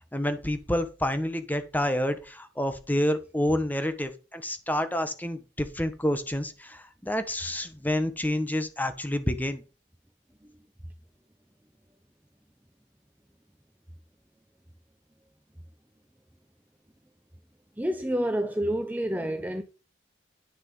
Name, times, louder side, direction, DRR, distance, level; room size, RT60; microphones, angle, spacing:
voice 1, 0.1-9.6, left 1 dB, 10° left, 1.2 m, -28 dB
voice 2, 17.8-19.6, right 1 dB, 10° right, 0.7 m, -28 dB
10.0 x 6.5 x 5.5 m
head